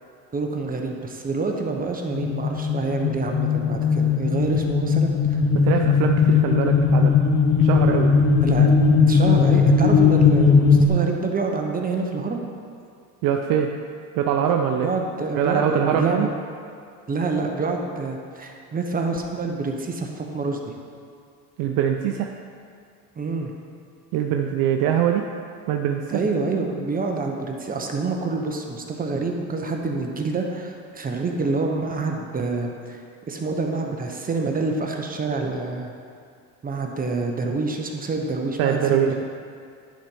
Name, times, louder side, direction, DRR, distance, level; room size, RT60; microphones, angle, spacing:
voice 1, 0.3-5.4 8.4-8.7 9.1-12.4 14.8-16.3 17.1-20.7 23.2-23.5 26.1-33.0 33.3-35.9 36.6-39.1, right 3 dB, 20° right, 2 dB, 0.9 m, -27 dB
sound 1, 2.1-10.9, left 5 dB, 45° left, 0.9 m, -18 dB
voice 2, 5.5-7.2 7.6-8.1 13.2-13.7 14.2-14.9 15.3-16.3 21.6-22.3 24.1-25.3 25.7-26.2 38.6-39.1, right 9 dB, 60° right, 3 dB, 0.6 m, -22 dB
10.5 x 4.4 x 5.4 m, 2.3 s
supercardioid pair, 115°, 38 cm